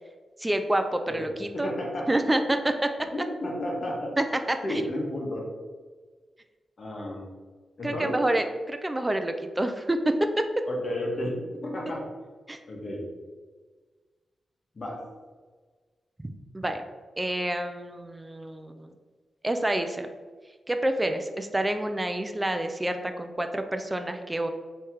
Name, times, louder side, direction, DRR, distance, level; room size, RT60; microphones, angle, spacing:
voice 1, 0.4-1.7 2.1-2.9 4.2-4.8 7.8-10.6 12.5-12.6 16.2-16.8 17.2-18.9 19.4-20.1 20.7-24.5, right 1 dB, 20° right, 7 dB, 0.4 m, -28 dB
voice 2, 1.1-2.1 3.1-4.1 4.6-5.4 6.8-7.3 7.8-8.2 10.7-11.4 11.6-12.0 12.7-13.0 14.7-15.0, left 1 dB, 55° left, -2 dB, 1.4 m, -32 dB
3.4 x 3.2 x 4.5 m, 1.4 s
cardioid pair, 50°, 0 cm